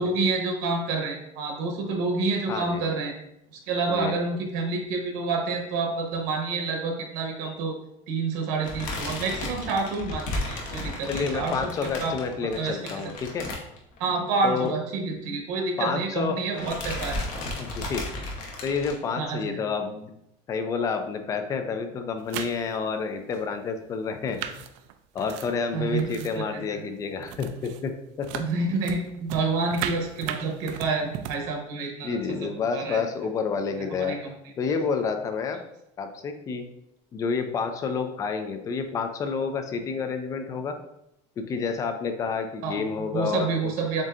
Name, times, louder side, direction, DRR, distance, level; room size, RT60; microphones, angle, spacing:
voice 1, 0.0-3.1 3.5-7.7 8.1-12.1 12.4-13.0 14.0-17.1 19.2-19.6 25.7-26.8 28.4-33.0 33.7-34.3 42.6-44.0, right 4 dB, 60° right, 2 dB, 0.9 m, -28 dB
voice 2, 2.5-2.8 3.9-4.2 11.0-13.5 14.4-14.7 15.8-16.4 17.6-18.1 18.6-20.2 20.5-24.7 25.1-28.4 32.0-34.2 34.6-35.6 36.0-36.7 37.1-40.8 41.4-43.5, left 5 dB, 20° left, 7 dB, 0.3 m, -29 dB
sound 1, 8.6-14.2 14.5-14.7 14.9-15.0 16.0-16.3 16.6-18.9, left 2 dB, 50° left, 0.9 m, -34 dB
sound 2, 22.2-22.8 23.3-23.4 24.1-26.4 26.7-26.9 27.2-27.9 28.2-31.4, right 10 dB, 75° right, 0.4 m, -37 dB
7.2 x 2.7 x 2.4 m, 0.80 s
cardioid pair, 180°, 17 cm